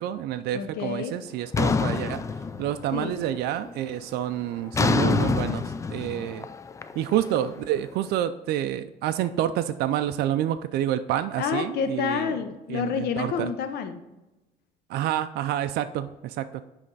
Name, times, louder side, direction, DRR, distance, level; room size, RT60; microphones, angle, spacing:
voice 1, 0.0-6.5 7.0-12.3 12.7-13.5 14.9-16.6, right 11 dB, 75° right, 10 dB, 0.4 m, -28 dB
voice 2, 0.5-1.2 2.9-3.1 11.4-14.0, left 6 dB, 75° left, 7 dB, 0.7 m, -29 dB
sound 1, 1.5-3.1 3.4-3.9 4.7-7.8, left 4 dB, 20° left, 0.3 m, -26 dB
9.7 x 3.3 x 4.0 m, 0.99 s
cardioid pair, 110°, 17 cm